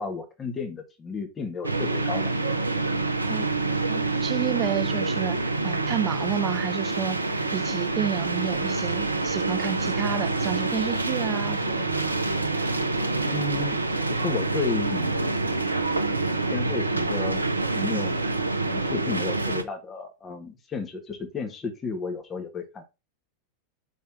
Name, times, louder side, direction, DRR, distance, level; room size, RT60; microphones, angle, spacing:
voice 1, 0.0-2.3 13.3-13.8 14.1-15.1 16.5-17.4 17.7-18.2 18.7-22.8, left 4 dB, 20° left, 1.7 m, -33 dB
sound 1, 1.6-19.6, right 3 dB, 80° right, 0.8 m, -26 dB
voice 2, 3.9-7.2 7.5-11.9 17.9-18.0, right 10 dB, 30° right, 0.3 m, -30 dB
5.8 x 4.1 x 5.6 m
figure-of-eight pair, 90°, 0 cm